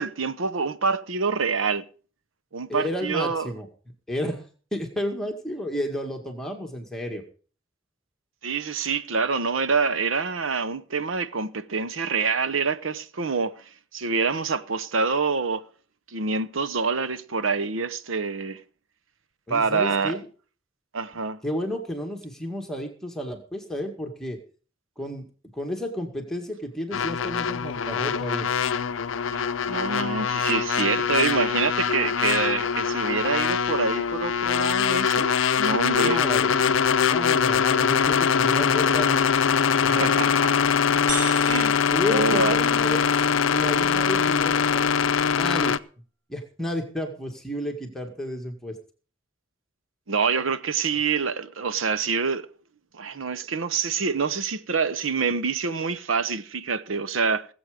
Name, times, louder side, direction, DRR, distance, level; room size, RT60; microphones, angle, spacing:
voice 1, 0.0-1.9 2.5-3.5 8.4-15.7 16.1-18.6 19.5-20.2 20.9-21.4 29.3-36.2 39.8-40.5 41.5-41.8 42.1-42.6 50.1-52.5 52.9-57.5, right 4 dB, 90° right, 0.8 m, -26 dB
voice 2, 2.7-3.7 4.1-4.5 4.7-7.2 19.5-20.3 21.4-24.4 25.0-25.2 25.5-28.5 36.0-39.2 39.8-40.1 41.9-43.2 43.4-44.9 45.3-45.8 46.3-48.8, equal, 5° left, 2.0 m, -32 dB
sound 1, 26.9-45.8, left 7 dB, 80° left, 0.5 m, -23 dB
sound 2, 41.1-43.0, right 5 dB, 60° right, 1.9 m, -36 dB
18.5 x 8.1 x 5.1 m
head